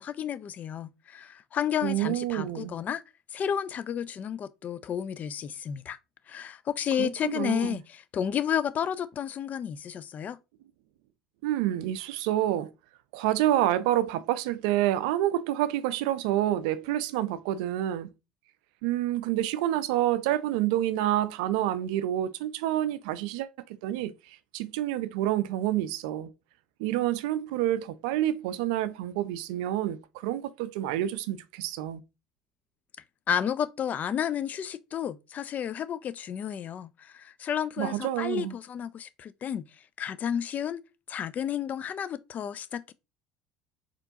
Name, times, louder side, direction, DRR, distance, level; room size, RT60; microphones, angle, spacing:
voice 1, 0.0-3.0 3.3-6.0 6.3-10.4 33.3-39.6 40.0-40.8 41.1-42.9, left 9 dB, 40° left, 0.4 m, -31 dB
voice 2, 1.8-2.7 7.0-7.8 11.4-12.7 13.1-18.1 18.8-26.3 26.8-32.0 37.8-38.5, right 13 dB, 70° right, 0.4 m, -28 dB
4.4 x 2.9 x 2.6 m
hypercardioid pair, 65°, 4 cm